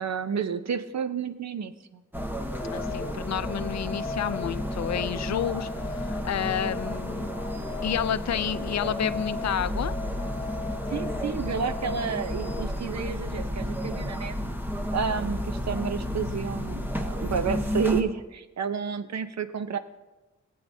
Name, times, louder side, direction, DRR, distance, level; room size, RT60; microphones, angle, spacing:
voice 1, 0.0-2.0 10.9-14.3 14.9-19.8, right 6 dB, 65° right, 10 dB, 0.7 m, -31 dB
sound 1, 2.1-18.0, equal, 5° right, 0.9 m, -32 dB
sound 2, 2.5-12.6, left 3 dB, 15° left, 1.1 m, -38 dB
voice 2, 2.7-7.3 7.8-9.9, left 9 dB, 65° left, 14 dB, 0.4 m, -30 dB
19.5 x 8.6 x 2.7 m, 1.1 s
wide cardioid pair, 95°, 29 cm